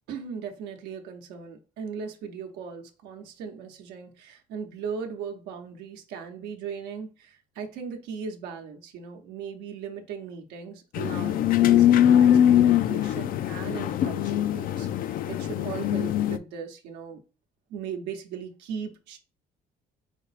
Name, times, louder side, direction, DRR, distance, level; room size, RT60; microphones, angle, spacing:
voice 1, 0.1-17.2 17.7-19.2, right 6 dB, 90° right, 3 dB, 0.8 m, -38 dB
sound 1, 10.9-16.4, left 10 dB, 60° left, 0.4 m, -22 dB
5.0 x 2.0 x 4.0 m, 0.33 s
cardioid pair, 110°, 17 cm